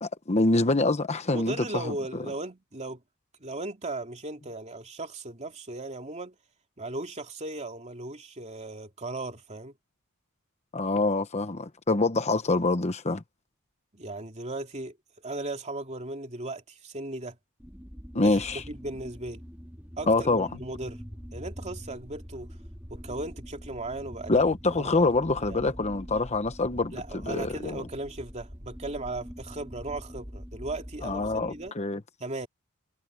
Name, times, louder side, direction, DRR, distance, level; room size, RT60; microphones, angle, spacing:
voice 1, 0.0-1.9 10.7-13.2 18.1-18.6 20.1-20.5 24.3-27.8 31.0-32.0, left 2 dB, 30° left, 1.0 m, -25 dB
voice 2, 1.3-3.0 3.4-6.4 6.8-9.7 13.9-15.0 15.2-17.4 18.2-19.4 20.0-21.0 21.3-22.5 22.9-24.4 24.7-25.0 25.4-25.7 26.9-31.7 32.2-32.5, right 2 dB, 30° right, 2.8 m, -37 dB
sound 1, 17.6-31.7, equal, 5° right, 4.6 m, -44 dB
head